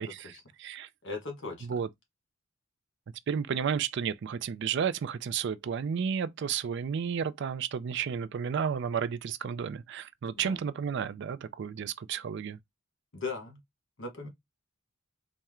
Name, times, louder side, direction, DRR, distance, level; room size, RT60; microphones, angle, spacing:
voice 1, 0.0-0.9 1.6-1.9 3.3-12.6, right 7 dB, 55° right, 0.3 m, -32 dB
voice 2, 1.0-1.7 10.4-10.6 13.1-13.6 14.0-14.3, left 4 dB, 60° left, 1.4 m, -37 dB
4.2 x 2.1 x 3.5 m
head